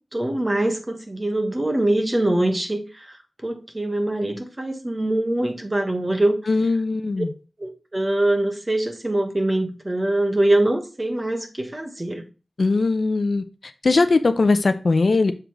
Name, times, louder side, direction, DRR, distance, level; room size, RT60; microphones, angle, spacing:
voice 1, 0.1-2.8 3.4-6.4 7.6-12.2, right 1 dB, 25° right, 1.3 m, -23 dB
voice 2, 6.5-7.3 12.6-13.4 13.8-15.3, left 3 dB, 65° left, 0.6 m, -19 dB
6.8 x 3.9 x 4.5 m
wide cardioid pair, 70°, 0 cm